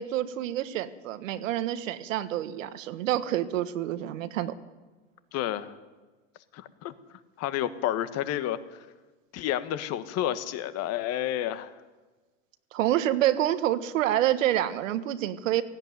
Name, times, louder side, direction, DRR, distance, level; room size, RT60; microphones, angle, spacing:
voice 1, 0.0-4.5 12.7-15.6, right 12 dB, 75° right, 12 dB, 1.5 m, -27 dB
voice 2, 5.3-5.7 6.5-6.9 7.4-8.8 9.3-11.7, left 12 dB, 40° left, 12 dB, 1.4 m, -30 dB
17.0 x 16.5 x 9.6 m, 1.3 s
supercardioid pair, 125°, 39 cm